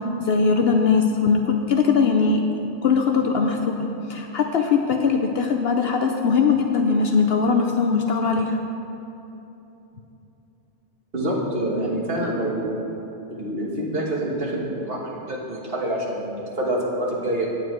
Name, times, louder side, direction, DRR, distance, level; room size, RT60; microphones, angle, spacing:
voice 1, 0.2-2.4 2.8-8.6, left 5 dB, 60° left, 3 dB, 0.7 m, -20 dB
voice 2, 11.1-12.7 13.3-17.5, right 1 dB, 50° right, -3 dB, 1.6 m, -26 dB
9.2 x 9.1 x 4.6 m, 3.0 s
omnidirectional pair, 1.3 m